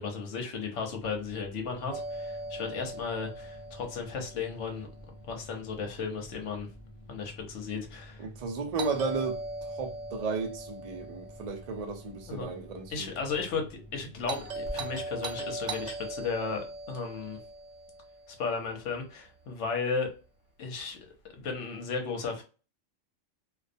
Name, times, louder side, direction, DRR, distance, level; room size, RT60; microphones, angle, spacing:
voice 1, 0.0-4.9 5.2-6.7 7.1-8.3 12.3-12.5 12.9-17.4 18.4-20.1 20.6-22.4, left 5 dB, 75° left, 1.0 m, -35 dB
sound 1, 0.9-17.3, equal, 35° left, 0.6 m, -50 dB
Doorbell, 1.9-5.9 8.8-13.0 14.3-18.7, right 2 dB, 85° right, 1.0 m, -40 dB
voice 2, 8.2-13.1, right 4 dB, 55° right, 0.4 m, -34 dB
2.3 x 2.2 x 2.5 m
omnidirectional pair, 1.3 m